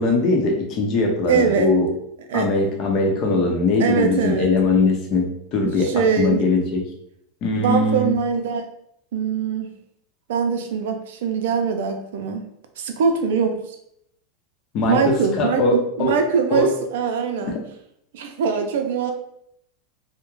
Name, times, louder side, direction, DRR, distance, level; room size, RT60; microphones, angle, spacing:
voice 1, 0.0-1.9 2.3-6.8 7.4-8.1 14.7-16.1 16.5-16.7 17.4-17.6, left 3 dB, 50° left, 1 dB, 0.7 m, -21 dB
voice 2, 1.3-1.8 2.3-2.5 3.8-4.5 5.6-6.5 7.6-8.6 9.1-9.8 10.3-12.5 12.8-13.8 14.9-17.5 18.1-19.1, right 6 dB, 80° right, 5 dB, 0.4 m, -22 dB
2.3 x 2.1 x 3.1 m, 0.73 s
supercardioid pair, 120°, 0 cm